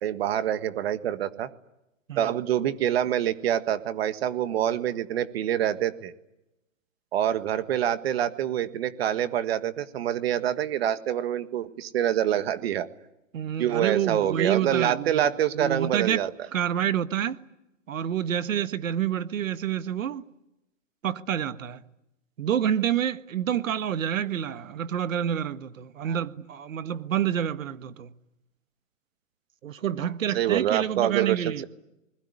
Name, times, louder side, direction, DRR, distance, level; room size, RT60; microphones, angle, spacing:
voice 1, 0.0-1.5 2.1-6.1 7.1-12.9 13.6-16.3 26.0-26.2 30.3-31.7, right 11 dB, 50° right, 1.7 m, -26 dB
voice 2, 13.3-15.3 15.5-16.2 16.5-17.4 17.9-20.2 21.0-21.8 22.4-28.1 29.6-31.7, right 9 dB, 75° right, 1.6 m, -28 dB
28.5 x 21.0 x 9.9 m
hypercardioid pair, 165°, 39 cm